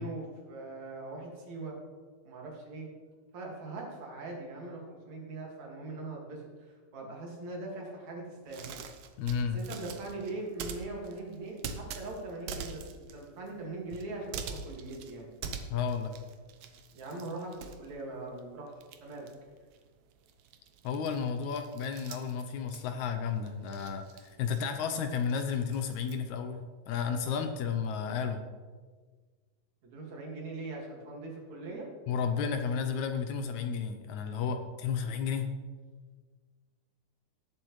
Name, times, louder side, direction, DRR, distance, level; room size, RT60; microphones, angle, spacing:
voice 1, 0.0-1.8 2.2-2.9 3.3-8.7 9.5-12.8 13.1-15.3 16.9-18.7 19.0-19.3 29.8-31.9, right 2 dB, 55° right, -1 dB, 3.2 m, -41 dB
sound 1, 8.5-18.5 18.7-26.2, right 6 dB, 75° right, 1.8 m, -45 dB
voice 2, 9.2-9.6 15.7-16.1 20.8-28.4 32.1-35.5, left 6 dB, 75° left, 6 dB, 1.8 m, -32 dB
18.0 x 7.6 x 3.2 m, 1.5 s
omnidirectional pair, 4.0 m